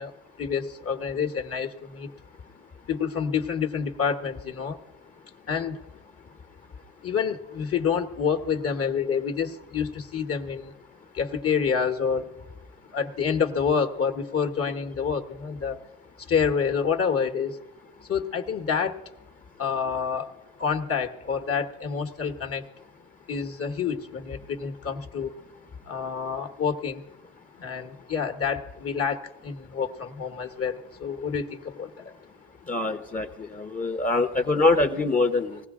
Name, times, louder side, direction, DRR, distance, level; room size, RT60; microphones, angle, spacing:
voice 1, 0.0-2.1 2.9-4.8 5.5-5.8 7.0-10.8 11.1-12.3 12.9-15.8 16.2-17.6 18.0-19.1 19.6-20.3 20.6-22.7 23.3-25.3 25.8-27.0 27.5-32.1, left 6 dB, 50° left, 6 dB, 1.2 m, -28 dB
voice 2, 32.7-35.6, left 3 dB, 25° left, 7 dB, 0.8 m, -24 dB
20.0 x 15.5 x 3.7 m, 0.94 s
cardioid pair, 90°, 30 cm